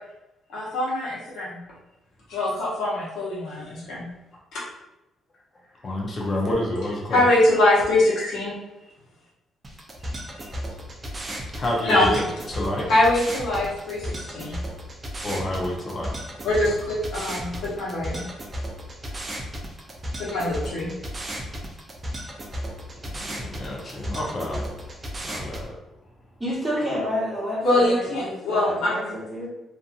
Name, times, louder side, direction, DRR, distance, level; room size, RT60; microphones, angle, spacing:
voice 1, 0.5-1.6 2.3-4.1 7.1-8.6 11.8-12.1 12.9-14.6 16.4-18.2 20.2-20.9 27.6-29.1, left 1 dB, 80° left, -6 dB, 1.0 m, -23 dB
voice 2, 5.8-7.2 8.2-8.3 11.5-12.9 15.2-16.3 17.7-17.8 23.1-24.9 25.2-25.8, left 1 dB, 40° left, -2 dB, 0.6 m, -29 dB
sound 1, 9.6-25.6, equal, 25° right, 0.5 m, -34 dB
voice 3, 26.4-29.5, equal, 5° right, -9 dB, 1.2 m, -29 dB
2.6 x 2.5 x 2.3 m, 0.97 s
cardioid pair, 90°, 0 cm